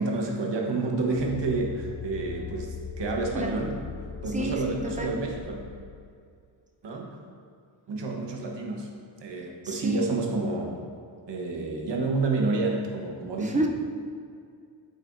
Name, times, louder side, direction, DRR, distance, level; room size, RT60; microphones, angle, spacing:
voice 1, 0.0-3.7 4.2-5.6 6.8-7.1 7.9-8.9 9.2-10.7 11.3-13.6, right 3 dB, 60° right, 0 dB, 1.4 m, -29 dB
sound 1, 1.2-6.2, left 6 dB, 35° left, 0.4 m, -39 dB
voice 2, 4.3-5.2 9.6-10.1 13.4-13.7, right 1 dB, 15° right, 1 dB, 0.7 m, -30 dB
8.8 x 7.7 x 2.8 m, 2.3 s
cardioid pair, 115°, 48 cm